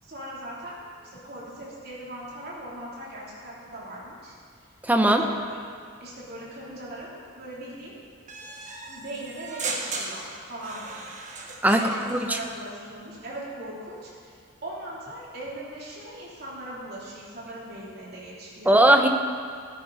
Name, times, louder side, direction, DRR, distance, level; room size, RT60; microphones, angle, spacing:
voice 1, 0.0-4.3 5.0-5.6 6.0-8.0 8.9-11.2 11.7-18.8, right 1 dB, 60° right, -6 dB, 3.2 m, -39 dB
voice 2, 4.8-5.2 11.6-12.4 18.7-19.1, right 1 dB, 10° right, 4 dB, 0.7 m, -19 dB
sound 1, 8.3-12.3, right 3 dB, 40° right, 1.2 m, -36 dB
14.5 x 9.4 x 4.1 m, 2.1 s
head